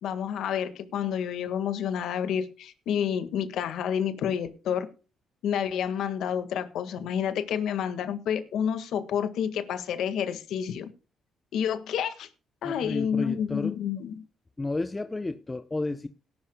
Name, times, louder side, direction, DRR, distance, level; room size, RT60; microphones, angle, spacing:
voice 1, 0.0-4.9 5.4-10.9 11.5-12.3 12.6-14.2, left 8 dB, 80° left, 1.6 m, -29 dB
voice 2, 12.6-13.8 14.6-16.1, left 2 dB, 20° left, 0.8 m, -32 dB
19.0 x 11.5 x 2.2 m
cardioid pair, 90°, 0 cm